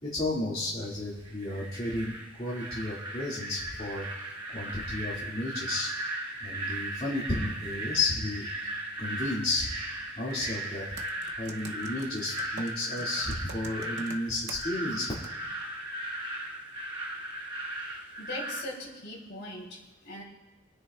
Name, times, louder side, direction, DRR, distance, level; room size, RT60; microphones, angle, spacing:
voice 1, 0.0-2.1 2.4-4.1 4.5-5.9 6.4-8.5 9.0-9.7 10.2-10.9 11.3-15.1, left 2 dB, 30° left, -7 dB, 2.2 m, -32 dB
sound 1, 1.3-18.6, right 1 dB, 25° right, 1.5 m, -37 dB
Computer keyboard, 10.3-10.5 11.0-15.0 15.2-15.4, right 4 dB, 60° right, 0.8 m, -45 dB
voice 2, 18.2-20.2, left 1 dB, 60° left, -2 dB, 3.4 m, -40 dB
28.5 x 9.7 x 2.4 m, 1.2 s
head